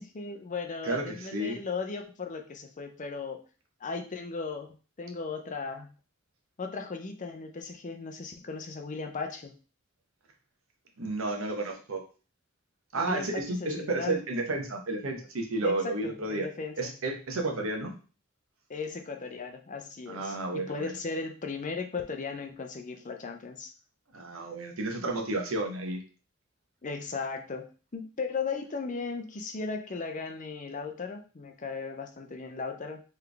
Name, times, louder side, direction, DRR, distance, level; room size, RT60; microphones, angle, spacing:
voice 1, 0.0-3.4 3.8-4.7 5.0-5.9 6.6-9.5 13.0-14.2 15.6-16.9 18.7-23.7 26.8-27.7 27.9-33.0, left 4 dB, 35° left, 5 dB, 0.5 m, -36 dB
voice 2, 0.8-1.6 11.0-12.0 12.9-16.5 16.8-17.9 20.1-20.9 24.1-26.0, right 2 dB, 75° right, 2 dB, 1.0 m, -32 dB
4.0 x 3.3 x 3.4 m, 0.36 s
head